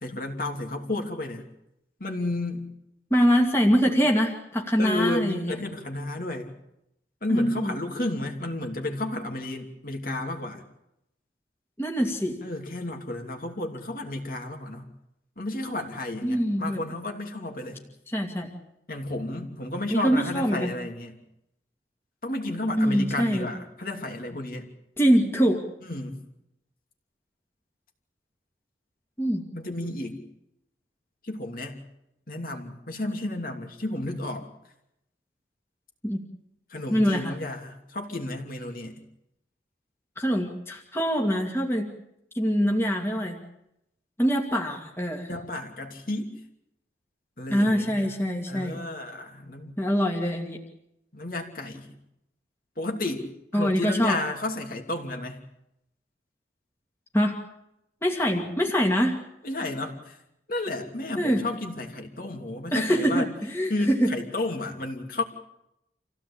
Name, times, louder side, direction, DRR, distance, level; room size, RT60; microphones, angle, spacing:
voice 1, 0.0-1.4 2.0-2.7 4.8-6.5 7.2-10.6 12.4-14.9 15.4-17.8 18.9-21.2 22.2-24.6 25.8-26.2 29.5-30.2 31.2-31.8 32.3-34.5 36.7-39.0 45.3-46.4 47.4-48.1 48.5-49.7 51.1-51.9 52.8-55.4 59.4-60.2 60.5-63.3 63.7-65.2, left 2 dB, 50° left, 3 dB, 2.9 m, -32 dB
voice 2, 3.1-5.6 7.3-7.8 11.8-12.4 16.2-16.8 18.1-18.5 19.9-20.7 22.8-23.5 25.0-25.6 29.2-29.4 36.0-36.2 36.9-37.3 40.2-41.9 42.3-43.4 44.2-45.3 47.5-48.8 49.8-50.6 53.5-54.2 57.1-57.4 58.0-59.2 61.1-61.4 62.7-64.1, equal, 15° left, 0 dB, 2.4 m, -24 dB
27.0 x 16.0 x 8.6 m, 0.84 s
head